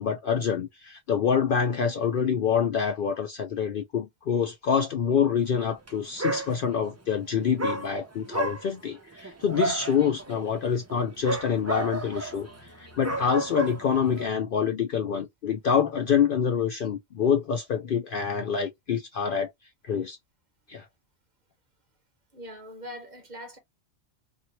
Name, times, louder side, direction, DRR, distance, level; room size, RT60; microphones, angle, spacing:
voice 1, 0.0-19.5 19.8-20.2 20.7-20.8, left 7 dB, 60° left, 0.6 m, -26 dB
Dog, 5.7-5.9 6.2-6.9 7.6-14.3, right 2 dB, 25° right, 0.4 m, -33 dB
voice 2, 22.3-23.6, equal, 40° right, 1.0 m, -41 dB
2.9 x 2.6 x 2.7 m
omnidirectional pair, 1.2 m